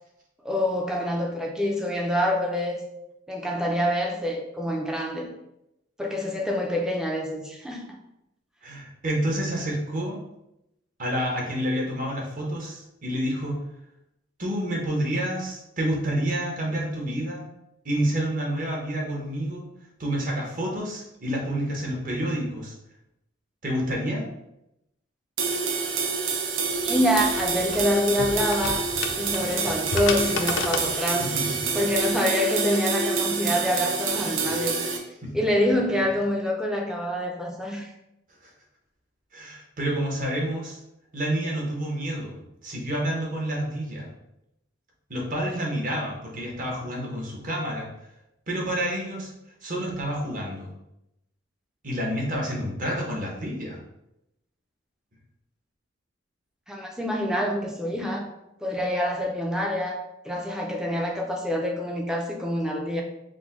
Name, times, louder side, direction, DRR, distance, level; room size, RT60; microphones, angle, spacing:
voice 1, 0.4-2.8 3.3-5.3 6.0-8.0 26.8-28.9 29.2-31.3 31.7-34.8 35.3-37.9 56.7-58.3 58.6-63.0, equal, 5° right, 0 dB, 0.5 m, -26 dB
voice 2, 8.6-10.2 11.0-13.6 14.4-17.5 17.8-19.7 20.0-22.7 23.6-24.2 30.9-31.7 34.2-34.9 35.2-35.3 38.4-38.5 39.3-40.8 41.1-42.3 42.6-44.1 45.1-47.9 48.5-49.3 49.6-50.7 51.8-53.8, right 1 dB, 40° right, -2 dB, 1.0 m, -29 dB
sound 1, 25.4-35.0, right 5 dB, 70° right, 0.6 m, -27 dB
sound 2, 26.7-32.1, left 4 dB, 60° left, 0.5 m, -33 dB
5.0 x 2.2 x 3.7 m, 0.86 s
head